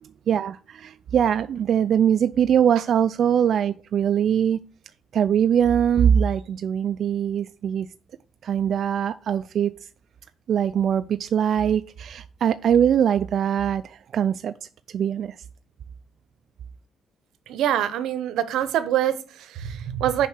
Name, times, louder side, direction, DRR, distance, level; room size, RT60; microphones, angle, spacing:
voice 1, 0.0-4.6 5.1-7.9 8.4-9.7 10.5-14.5 14.9-15.4, right 8 dB, 60° right, 0.3 m, -22 dB
voice 2, 17.5-20.3, right 11 dB, 90° right, 0.9 m, -25 dB
6.7 x 5.3 x 6.6 m
cardioid pair, 120°, 0 cm